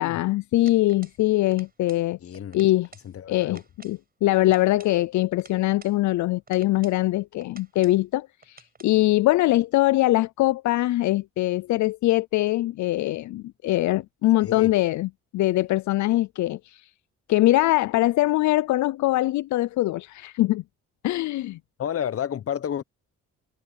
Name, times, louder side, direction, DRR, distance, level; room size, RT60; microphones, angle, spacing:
voice 1, 0.0-2.2 2.5-2.9 3.3-3.6 3.8-16.9 17.3-20.6 21.0-21.6, left 17 dB, 70° left, 0.5 m, -22 dB
sound 1, 0.7-1.2 1.5-2.1 2.3-3.1 3.4-4.0 4.4-6.0 6.5-7.0 7.4-8.0 8.4-8.9, right 4 dB, 30° right, 6.3 m, -51 dB
voice 2, 2.2-2.6 3.0-3.6 14.4-14.7 21.8-22.8, left 9 dB, 50° left, 1.0 m, -31 dB
cardioid pair, 90°, 30 cm